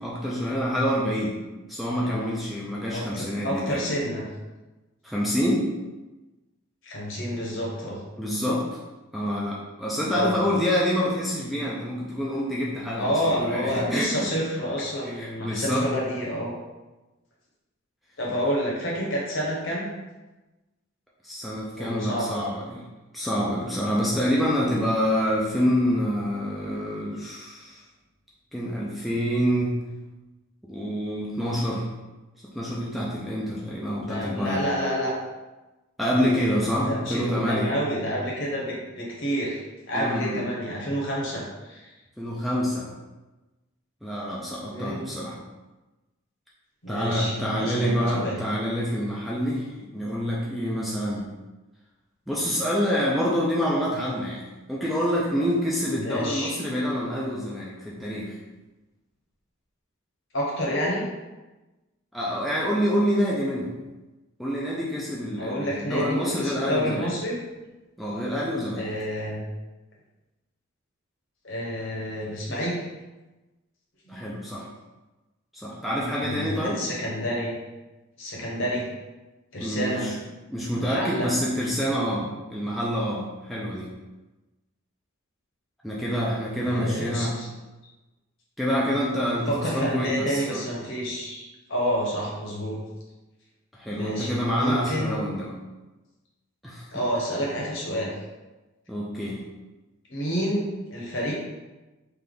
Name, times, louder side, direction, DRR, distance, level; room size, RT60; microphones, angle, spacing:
voice 1, 0.0-1.4 1.7-3.9 5.0-5.7 8.2-8.7 9.1-14.3 15.0-15.9 21.2-22.8 23.1-27.8 28.5-29.8 30.6-31.9 32.5-34.6 36.0-37.7 39.9-40.4 42.2-42.9 44.0-45.4 46.9-51.3 52.3-54.4 54.7-58.3 62.1-63.7 64.4-67.1 68.0-68.9 74.1-74.7 75.5-76.8 79.6-80.1 80.5-83.9 85.8-87.3 88.6-90.6 93.7-95.5 96.6-96.9 98.9-99.4, equal, ahead, -6 dB, 0.4 m, -27 dB
voice 2, 2.9-4.2 6.8-8.0 10.1-10.3 13.0-16.5 18.2-19.9 21.7-22.4 34.0-35.1 36.1-39.6 39.9-41.9 44.7-45.0 46.8-48.4 56.0-56.5 60.3-61.0 65.4-67.4 68.8-69.4 71.4-72.8 74.1-74.3 76.2-77.5 78.2-78.9 79.5-80.1 80.7-81.3 86.6-87.5 89.5-92.8 93.9-94.3 94.6-95.2 96.9-98.1 100.1-101.3, equal, 60° left, -3 dB, 1.1 m, -29 dB
3.4 x 2.8 x 3.8 m, 1.1 s
head